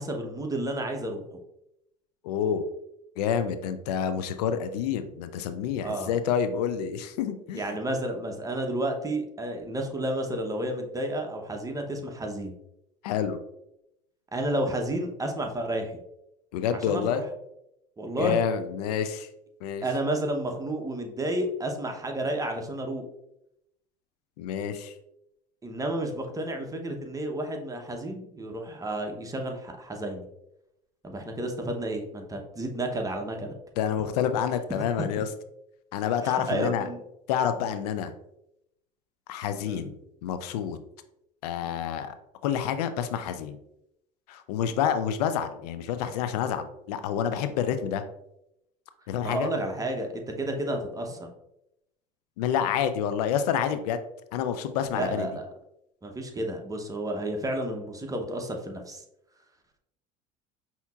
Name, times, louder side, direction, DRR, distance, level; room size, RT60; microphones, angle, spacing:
voice 1, 0.0-1.4 5.8-6.1 7.5-12.5 14.3-16.0 16.7-17.2 18.0-18.4 19.8-23.0 25.6-30.3 31.0-33.5 36.2-37.0 39.7-39.9 49.2-51.3 54.9-55.5 56.0-59.0, right 1 dB, 15° right, 3 dB, 0.8 m, -31 dB
voice 2, 2.2-2.7 3.2-7.7 13.0-13.4 16.5-17.2 18.2-19.3 19.6-19.8 24.4-24.9 33.8-35.3 35.9-36.9 37.3-38.1 39.3-39.9 40.2-40.8 41.4-42.1 42.4-43.6 44.3-48.0 49.1-49.5 52.4-54.0 54.3-55.3, left 8 dB, 85° left, 10 dB, 0.4 m, -28 dB
5.5 x 2.8 x 2.3 m, 0.82 s
hypercardioid pair, 80°, 20 cm